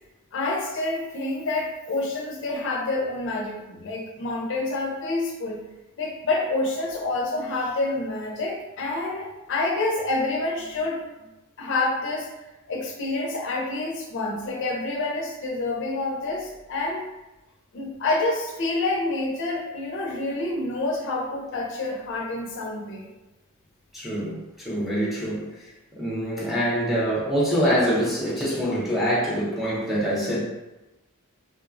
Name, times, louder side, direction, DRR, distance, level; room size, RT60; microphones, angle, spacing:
voice 1, 0.3-5.6 6.0-11.0 11.6-12.3 12.7-17.0 17.7-23.1, left 2 dB, 60° left, -1 dB, 0.5 m, -28 dB
voice 2, 23.9-25.5 25.9-30.4, equal, ahead, -7 dB, 0.6 m, -25 dB
3.2 x 2.1 x 2.4 m, 1.0 s
head